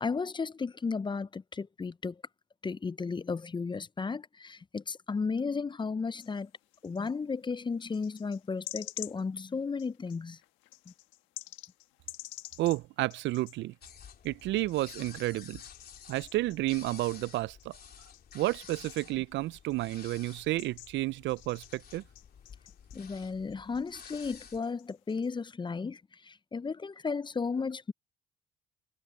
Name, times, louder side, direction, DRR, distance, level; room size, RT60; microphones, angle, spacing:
voice 1, 0.0-2.1 2.6-6.5 6.8-10.4 22.9-27.9, left 4 dB, 25° left, 0.5 m, -34 dB
sound 1, 6.2-7.2 7.8-15.1 15.5-23.5 23.7-25.6, left 17 dB, 90° left, 1.3 m, -49 dB
voice 2, 12.6-13.7 14.2-15.6 16.1-17.8 18.3-22.0, right 17 dB, 75° right, 0.4 m, -31 dB
sound 2, 13.8-24.6, left 7 dB, 55° left, 3.1 m, -52 dB
supercardioid pair, 60°, 19 cm